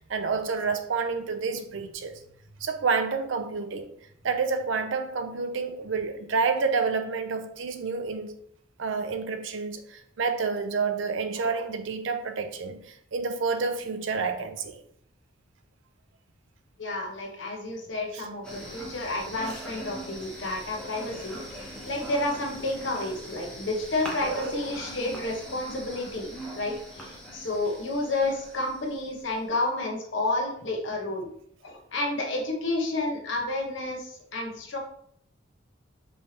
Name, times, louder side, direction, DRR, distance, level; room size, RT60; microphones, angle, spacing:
voice 1, 0.0-2.2 2.6-3.9 4.2-8.3 8.8-14.8 18.1-18.2 24.2-24.7, right 4 dB, 70° right, 0.5 m, -29 dB
voice 2, 16.8-21.4 21.8-31.3 31.6-34.8, left 2 dB, 65° left, 1.0 m, -30 dB
sound 1, 18.4-29.7, equal, 5° left, 0.9 m, -41 dB
5.4 x 3.2 x 2.8 m
head